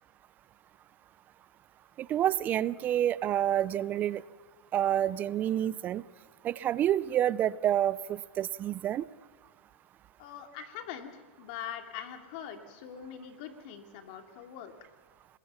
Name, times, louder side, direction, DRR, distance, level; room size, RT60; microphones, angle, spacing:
voice 1, 2.0-4.2 4.7-6.0 6.4-9.0, right 11 dB, 25° right, 20 dB, 0.5 m, -28 dB
voice 2, 10.2-11.1 11.4-14.7, left 9 dB, 50° left, 6 dB, 3.0 m, -42 dB
26.5 x 21.0 x 5.8 m, 1.6 s
hypercardioid pair, 140°, 7 cm